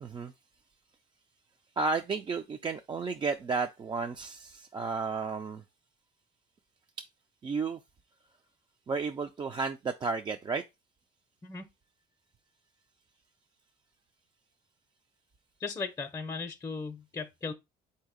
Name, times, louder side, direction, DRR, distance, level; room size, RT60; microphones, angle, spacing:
voice 1, 0.0-0.3 1.8-5.6 7.4-7.8 8.9-10.6, right 4 dB, 30° right, 0.4 m, -32 dB
voice 2, 15.6-17.5, left 4 dB, 20° left, 0.6 m, -37 dB
3.9 x 2.8 x 4.9 m
cardioid pair, 110°, 17 cm